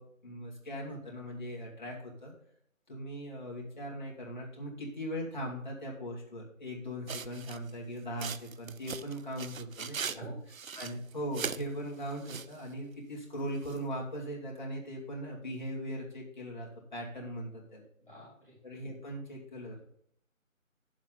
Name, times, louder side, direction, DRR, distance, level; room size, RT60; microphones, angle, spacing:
voice 1, 0.0-2.3 2.9-10.2 10.7-17.8 18.6-19.7, equal, 35° left, -3 dB, 2.4 m, -39 dB
sound 1, 7.1-7.7 8.2-10.2 10.5-11.6 12.1-12.6 13.6-13.8, right 6 dB, 80° right, 0.7 m, -39 dB
voice 2, 18.0-18.6, equal, 5° left, -20 dB, 3.6 m, -50 dB
9.5 x 7.4 x 3.9 m, 0.67 s
figure-of-eight pair, 170°, 40 cm